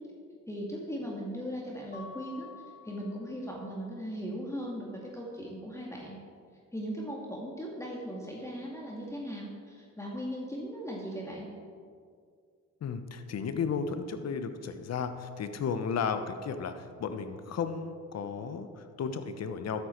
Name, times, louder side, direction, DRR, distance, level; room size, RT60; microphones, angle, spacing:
voice 1, 0.5-2.5 2.8-6.2 6.7-11.5, equal, 10° left, -3 dB, 2.3 m, -38 dB
Mallet percussion, 1.9-3.7, left 5 dB, 40° left, 2.7 m, -49 dB
voice 2, 12.8-19.9, left 6 dB, 55° left, 9 dB, 1.1 m, -34 dB
13.0 x 10.0 x 4.6 m, 2.1 s
cardioid pair, 80°, 30 cm